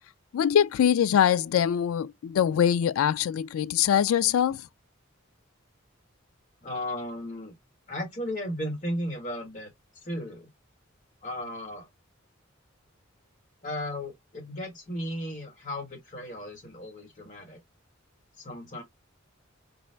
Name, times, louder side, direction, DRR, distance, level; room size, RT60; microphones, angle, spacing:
voice 1, 0.3-4.6, left 9 dB, 90° left, 0.3 m, -23 dB
voice 2, 6.6-7.5 7.9-9.7 10.0-10.5 11.2-11.9 13.6-17.6 18.4-18.8, left 1 dB, 40° left, 1.4 m, -35 dB
4.1 x 2.3 x 3.3 m
head